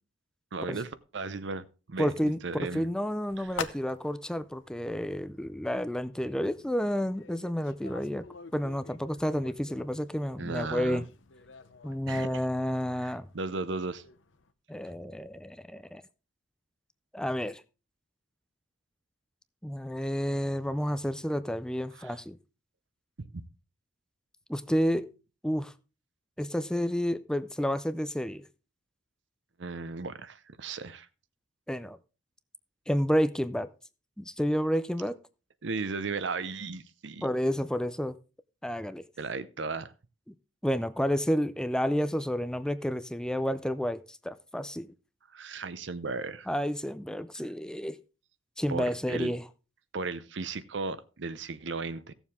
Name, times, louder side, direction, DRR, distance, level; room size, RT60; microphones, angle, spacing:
voice 1, 0.5-2.1 2.4-2.9 3.4-3.6 10.4-11.1 12.1-12.4 13.0-14.0 21.9-22.2 23.2-23.4 29.6-31.1 35.6-37.2 39.2-39.9 45.3-46.5 48.7-49.3 49.9-52.1, right 4 dB, 65° right, 0.7 m, -36 dB
voice 2, 2.0-8.2 8.5-11.0 11.8-13.3 14.7-16.0 17.1-17.6 19.6-22.4 24.5-25.1 25.4-25.7 26.4-28.4 31.7-32.0 32.9-33.7 34.2-35.2 37.2-38.2 38.6-39.0 40.6-44.9 46.5-48.0 48.6-49.4, equal, 5° left, 0.4 m, -30 dB
sound 1, 3.3-14.5, left 6 dB, 80° left, 0.8 m, -47 dB
16.0 x 7.1 x 3.6 m
head